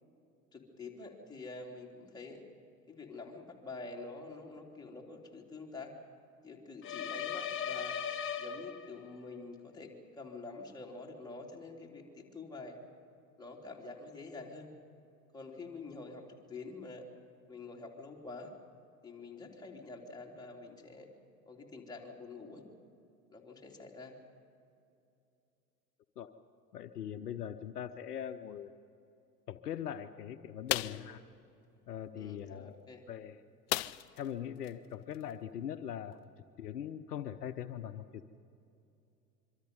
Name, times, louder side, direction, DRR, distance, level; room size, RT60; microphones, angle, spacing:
voice 1, 0.5-2.4 2.9-5.9 6.4-8.0 8.4-12.8 13.4-14.7 15.3-17.1 17.5-18.5 19.0-21.1 21.5-22.6 23.3-24.1 30.8-31.1 32.1-33.0, left 3 dB, 10° left, -2 dB, 3.3 m, -47 dB
sound 1, 6.8-9.2, left 8 dB, 25° left, 1.2 m, -38 dB
voice 2, 26.7-28.7 29.5-31.2 31.9-32.8 33.1-33.4 34.2-36.2 36.6-38.3, left 9 dB, 70° left, 10 dB, 0.9 m, -41 dB
sound 2, 30.7-31.1 33.7-34.3 34.6-34.7 35.1-35.3, left 17 dB, 40° left, 0.5 m, -34 dB
25.5 x 24.0 x 5.4 m, 2.7 s
figure-of-eight pair, 80°, 49 cm